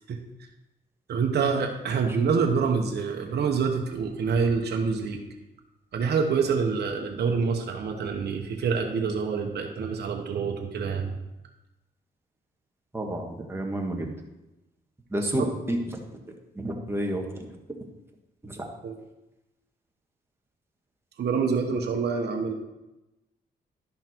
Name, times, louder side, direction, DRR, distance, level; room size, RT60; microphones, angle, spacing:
voice 1, 1.1-5.3 5.9-11.1 15.2-15.5 18.8-19.0 21.2-22.5, right 5 dB, 70° right, 2 dB, 1.1 m, -26 dB
voice 2, 12.9-14.1 15.1-15.8 16.6-17.4 18.4-18.6, right 1 dB, 15° right, 1 dB, 1.8 m, -30 dB
11.5 x 5.7 x 4.5 m, 0.98 s
cardioid pair, 75°, 18 cm